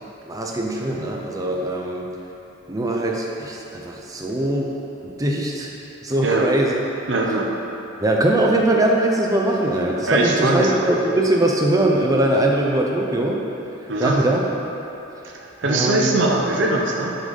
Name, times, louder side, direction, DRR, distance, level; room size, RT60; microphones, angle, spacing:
voice 1, 0.3-2.1 2.7-4.7 5.0-5.7 6.0-6.7 8.0-13.4 14.0-14.4 15.6-16.2, right 1 dB, 15° right, 0 dB, 0.5 m, -21 dB
voice 2, 7.1-7.5 10.1-10.9 13.9-14.2 15.2-17.1, right 2 dB, 60° right, -1 dB, 0.6 m, -21 dB
6.3 x 3.9 x 5.2 m, 3.0 s
head